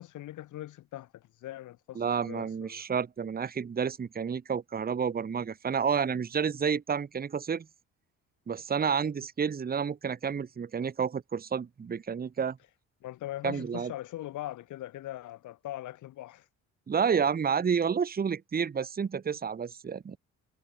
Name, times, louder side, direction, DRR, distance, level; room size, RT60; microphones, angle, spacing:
voice 1, 0.0-2.8 13.0-16.4, left 14 dB, 80° left, 1.6 m, -41 dB
voice 2, 1.9-7.7 8.5-12.6 13.4-13.9 16.9-20.2, right 6 dB, 30° right, 1.0 m, -30 dB
cardioid pair, 90°, 30 cm